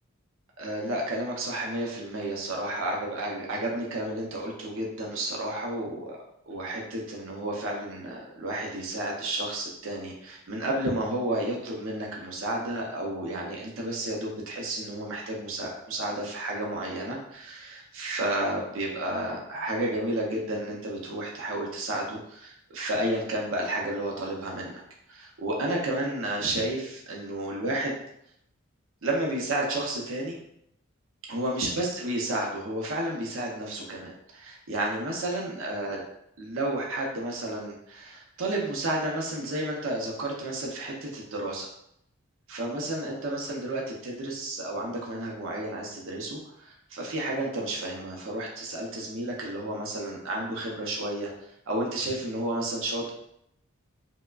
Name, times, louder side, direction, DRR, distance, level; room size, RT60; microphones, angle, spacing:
voice 1, 0.6-6.2 6.5-24.8 25.1-28.0 29.0-30.4 31.3-36.0 36.4-41.7 42.5-53.1, right 1 dB, 70° right, -2 dB, 0.6 m, -31 dB
4.4 x 2.1 x 2.3 m, 0.76 s
head